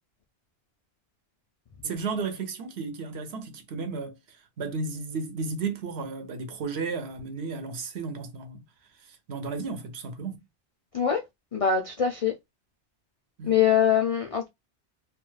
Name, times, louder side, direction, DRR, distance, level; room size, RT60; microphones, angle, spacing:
voice 1, 1.8-8.6 9.3-10.4 13.4-13.6, right 4 dB, 65° right, 0.9 m, -33 dB
voice 2, 11.5-12.3 13.4-14.5, left 8 dB, 65° left, 0.3 m, -23 dB
2.4 x 2.3 x 3.1 m
omnidirectional pair, 1.2 m